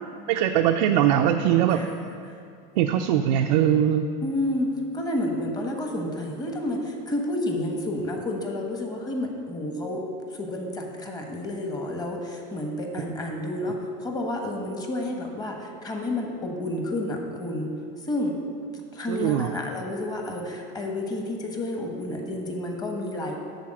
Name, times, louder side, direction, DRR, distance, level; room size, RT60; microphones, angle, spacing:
voice 1, 0.3-1.8 2.8-4.1 19.1-19.5, right 10 dB, 90° right, 4 dB, 0.5 m, -21 dB
voice 2, 1.7-2.4 4.2-10.0 10.3-17.7 18.0-18.3 18.9-23.4, left 1 dB, 20° left, 1 dB, 1.2 m, -30 dB
10.5 x 4.2 x 7.5 m, 2.4 s
supercardioid pair, 150°, 21 cm